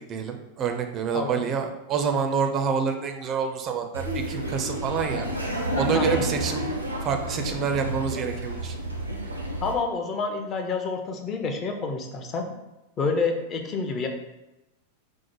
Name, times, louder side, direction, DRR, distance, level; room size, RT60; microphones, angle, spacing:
voice 1, 0.1-5.3 5.8-6.7 7.0-8.7, right 6 dB, 30° right, 5 dB, 0.4 m, -27 dB
Laughter, 3.9-9.7, right 1 dB, 85° right, 0.6 m, -30 dB
voice 2, 9.6-12.5 13.0-14.1, left 4 dB, 30° left, 5 dB, 0.6 m, -28 dB
4.4 x 2.1 x 4.5 m, 0.98 s
figure-of-eight pair, 90°, 0 cm